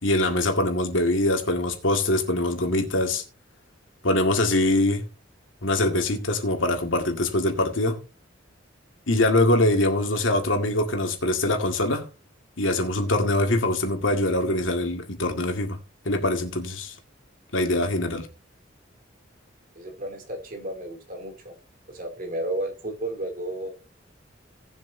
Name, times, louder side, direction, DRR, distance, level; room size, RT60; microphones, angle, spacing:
voice 1, 0.0-3.2 4.0-5.1 5.6-8.0 9.1-12.1 12.6-15.8 16.1-16.9 17.5-18.3, left 1 dB, 85° left, 2.1 m, -23 dB
voice 2, 19.7-21.5 21.9-23.7, right 1 dB, 45° right, 3.0 m, -33 dB
18.5 x 7.5 x 2.8 m
head